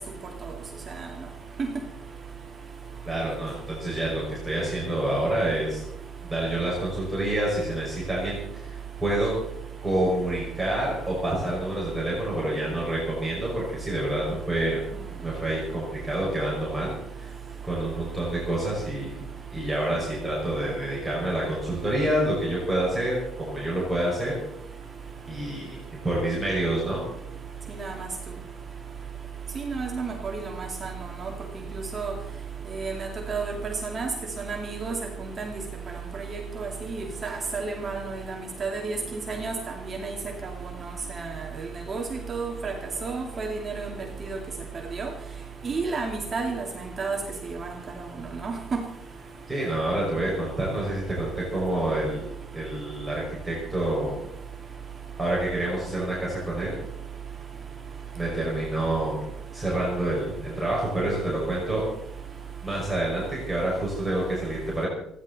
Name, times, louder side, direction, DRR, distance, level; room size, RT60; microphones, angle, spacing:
voice 1, 3.0-5.8 6.2-9.3 9.8-14.8 15.2-17.3 17.6-19.2 19.5-24.3 25.3-25.8 26.0-27.0 49.5-52.2 52.5-54.3 55.2-56.8 58.1-59.2 59.5-61.9 62.6-64.9, right 1 dB, 5° right, -6 dB, 5.8 m, -28 dB
voice 2, 27.7-28.1 29.6-30.9 31.2-31.3 31.7-32.1 32.7-34.1 34.4-35.0 35.4-35.6 36.2-39.5 39.8-40.2 41.1-41.4 41.9-42.0 42.3-42.7 43.0-43.9 44.2-44.4 44.9-45.1 45.6-47.2 47.6-47.7 48.4-48.8, right 4 dB, 25° right, 1 dB, 2.3 m, -31 dB
29.5 x 11.0 x 4.2 m, 0.79 s
cardioid pair, 150°, 0 cm